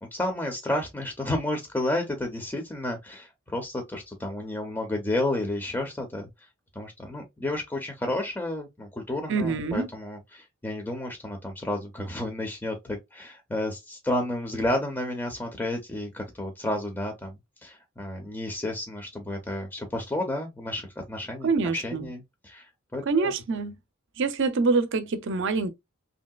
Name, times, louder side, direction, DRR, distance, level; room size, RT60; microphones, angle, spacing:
voice 1, 0.1-6.3 6.7-21.5 21.7-23.3, left 1 dB, 10° left, 0.5 m, -31 dB
voice 2, 9.3-9.9 21.4-22.1 23.0-23.7 24.2-25.7, right 4 dB, 65° right, 0.6 m, -25 dB
3.1 x 2.7 x 2.2 m
head